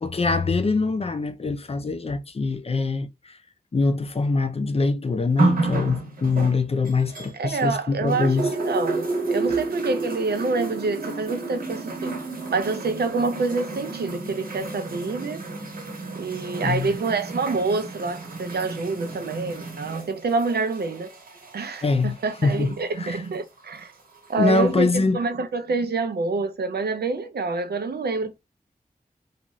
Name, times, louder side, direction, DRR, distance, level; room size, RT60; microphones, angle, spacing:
voice 1, 0.0-3.4 3.7-8.5 16.6-16.9 21.8-23.2 24.4-25.2, left 3 dB, 40° left, 0.4 m, -24 dB
sound 1, 5.4-7.7 8.1-22.8 23.7-23.8, right 3 dB, 65° right, 0.9 m, -31 dB
voice 2, 7.3-8.4 8.6-12.1 12.5-15.4 16.2-21.1 21.5-23.9 24.3-28.4, right 3 dB, 85° right, 0.5 m, -27 dB
2.5 x 2.4 x 3.0 m
wide cardioid pair, 75°, 16 cm